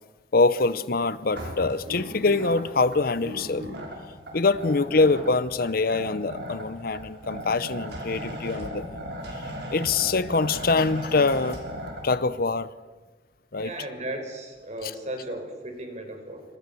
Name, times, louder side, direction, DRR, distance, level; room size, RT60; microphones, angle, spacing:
voice 1, 0.3-3.7 4.3-9.0 9.7-11.6 12.0-12.7 13.5-13.7 14.8-14.9, left 3 dB, 55° left, 16 dB, 0.8 m, -24 dB
sound 1, 1.3-12.0, equal, 60° right, 6.4 m, -37 dB
voice 2, 13.6-16.4, right 1 dB, 40° right, 5 dB, 5.4 m, -35 dB
27.5 x 26.0 x 7.0 m, 1.3 s
head